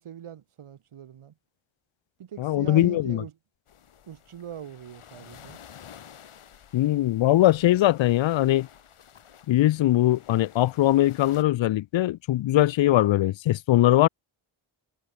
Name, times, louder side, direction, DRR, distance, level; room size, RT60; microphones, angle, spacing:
voice 1, 0.0-1.3 2.2-3.3 4.1-5.6, right 9 dB, 85° right, 2.9 m, -41 dB
voice 2, 2.4-3.2 6.7-8.7 9.5-14.1, left 14 dB, 65° left, 0.5 m, -21 dB
sound 1, 3.7-11.4, left 9 dB, 90° left, 4.9 m, -51 dB
wide cardioid pair, 175°, 49 cm